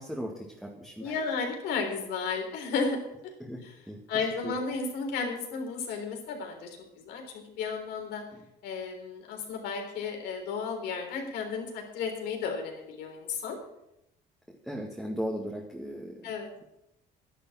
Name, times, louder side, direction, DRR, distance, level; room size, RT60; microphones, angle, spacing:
voice 1, 0.0-1.2 3.4-4.7 8.3-8.5 14.5-16.4, equal, ahead, -1 dB, 1.9 m, -38 dB
voice 2, 1.0-3.3 4.1-7.2 7.5-8.2 8.6-13.6 16.2-16.5, left 5 dB, 85° left, 2 dB, 3.8 m, -33 dB
12.0 x 11.0 x 5.9 m, 0.84 s
cardioid pair, 110°, 17 cm